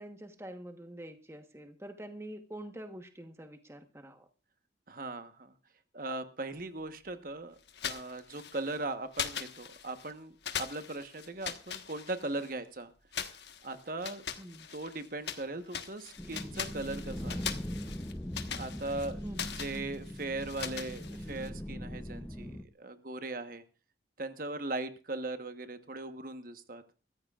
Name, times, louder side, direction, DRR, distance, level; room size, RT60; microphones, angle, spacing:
voice 1, 0.0-4.3 14.4-14.7 19.2-19.5, right 1 dB, 15° right, 6 dB, 1.1 m, -46 dB
voice 2, 4.9-5.5 5.9-7.5 7.8-12.9 13.6-14.2 14.7-17.6 18.5-23.6 24.2-26.8, right 2 dB, 50° right, 9 dB, 1.2 m, -39 dB
sound 1, 7.7-8.8 9.1-10.1 10.4-12.5 13.1-15.4 15.7-21.5, left 8 dB, 70° left, 1.4 m, -41 dB
sound 2, 16.2-22.6, equal, 10° left, 0.6 m, -41 dB
24.0 x 14.5 x 2.4 m, 0.32 s
head